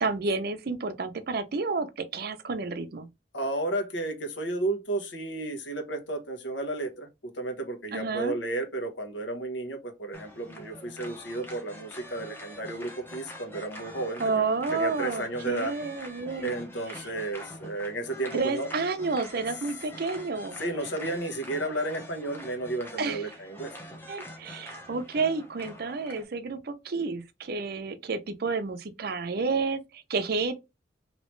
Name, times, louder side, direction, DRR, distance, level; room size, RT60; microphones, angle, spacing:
voice 1, 0.0-3.1 7.9-8.4 14.2-16.5 18.3-20.6 23.0-23.2 24.1-30.5, right 4 dB, 60° right, 0.5 m, -30 dB
voice 2, 3.3-7.1 7.3-14.4 14.7-15.7 16.4-18.7 20.6-23.7, right 2 dB, 90° left, 1.0 m, -32 dB
sound 1, 10.1-26.2, equal, 15° left, 0.8 m, -45 dB
3.1 x 2.9 x 3.0 m
head